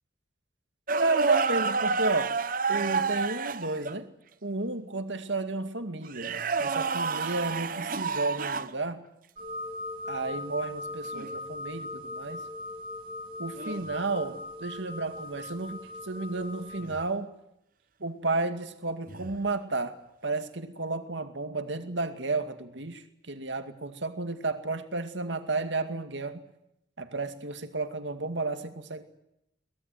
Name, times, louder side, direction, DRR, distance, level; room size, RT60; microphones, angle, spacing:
sound 1, 0.9-4.0 6.1-8.7 11.1-11.3 13.6-13.9 16.8-17.0 19.1-19.4, right 4 dB, 45° right, 0.9 m, -29 dB
voice 1, 1.0-2.3 2.7-4.1 4.4-9.0 10.1-12.4 13.4-17.3 18.0-20.0 20.2-26.4 27.0-29.0, right 3 dB, 80° right, 7 dB, 2.3 m, -32 dB
sound 2, 9.4-16.8, left 2 dB, 30° right, 3.0 m, -39 dB
23.5 x 18.5 x 9.3 m, 0.83 s
head